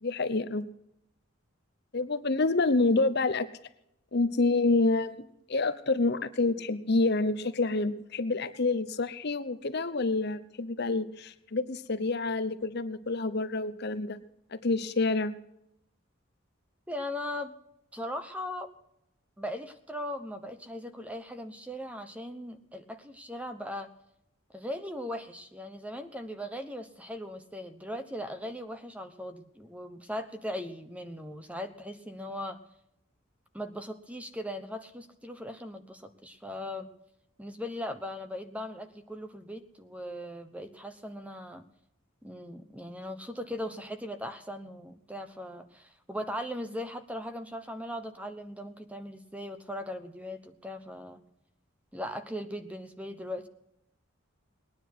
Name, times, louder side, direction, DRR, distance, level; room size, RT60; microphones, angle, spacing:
voice 1, 0.0-0.7 1.9-3.5 4.1-5.2 5.5-14.2 14.5-15.3, left 3 dB, 50° left, 11 dB, 0.8 m, -28 dB
voice 2, 16.9-17.5 17.9-18.7 19.4-23.9 24.5-32.6 33.5-36.9 37.4-41.6 42.2-51.2 51.9-53.5, left 1 dB, 5° right, 8 dB, 1.0 m, -39 dB
20.0 x 10.0 x 6.2 m, 0.80 s
head